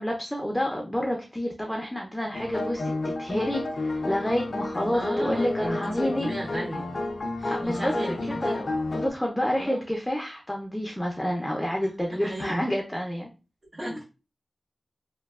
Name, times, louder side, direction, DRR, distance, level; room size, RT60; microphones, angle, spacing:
voice 1, 0.0-6.3 7.5-7.9 8.3-13.3 13.8-14.0, equal, 10° left, 0 dB, 0.6 m, -29 dB
sound 1, 2.3-9.1, left 2 dB, 70° left, 0.4 m, -31 dB
voice 2, 4.9-6.9 7.4-8.6 9.6-9.8 12.1-12.6 13.7-14.0, right 1 dB, 50° right, -11 dB, 1.4 m, -35 dB
3.1 x 2.2 x 2.4 m, 0.31 s
cardioid pair, 40°, 0 cm